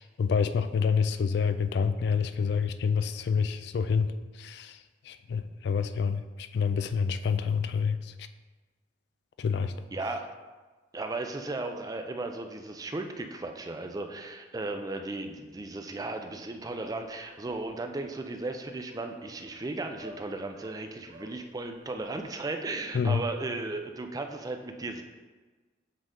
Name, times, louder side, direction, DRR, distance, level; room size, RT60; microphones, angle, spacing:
voice 1, 0.0-4.1 4.4-4.8 5.1-6.2 6.5-8.1 9.4-9.7 22.9-23.2, left 6 dB, 65° left, 10 dB, 0.3 m, -27 dB
voice 2, 9.9-10.3 10.9-25.0, right 2 dB, 20° right, 5 dB, 0.4 m, -35 dB
sound 1, 16.4-22.4, right 1 dB, 70° right, 1.0 m, -52 dB
7.5 x 3.7 x 3.7 m, 1.3 s
head